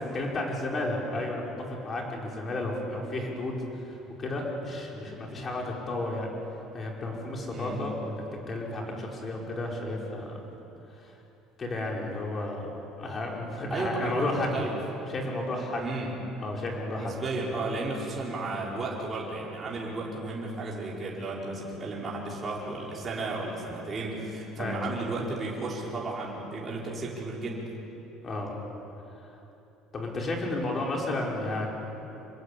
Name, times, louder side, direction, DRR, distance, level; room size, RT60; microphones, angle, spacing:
voice 1, 0.0-6.3 6.7-8.2 8.5-10.4 11.0-11.1 11.6-12.7 13.0-14.7 15.1-16.1 16.4-17.1 24.6-24.9 28.2-28.5 29.9-31.7, left 2 dB, 30° left, -1 dB, 5.3 m, -32 dB
voice 2, 13.7-14.7 15.8-16.1 17.0-27.6, right 2 dB, 25° right, -4 dB, 4.8 m, -33 dB
26.5 x 21.0 x 8.7 m, 3.0 s
cardioid pair, 140°, 0 cm